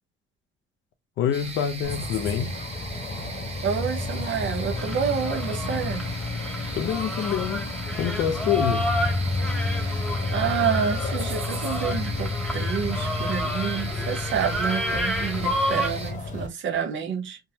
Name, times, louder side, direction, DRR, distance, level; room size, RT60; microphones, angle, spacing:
voice 1, 1.2-2.6 6.7-7.7 7.9-8.9, left 9 dB, 80° left, 0.6 m, -26 dB
sound 1, 1.3-16.1, right 3 dB, 30° right, 1.3 m, -38 dB
sound 2, 1.8-16.5, left 3 dB, 40° left, 1.0 m, -30 dB
voice 2, 3.6-6.1 9.7-10.0 10.3-17.4, right 7 dB, 70° right, 0.9 m, -28 dB
sound 3, 4.8-15.9, equal, ahead, 0.8 m, -31 dB
3.5 x 2.1 x 2.8 m
cardioid pair, 90°, 20 cm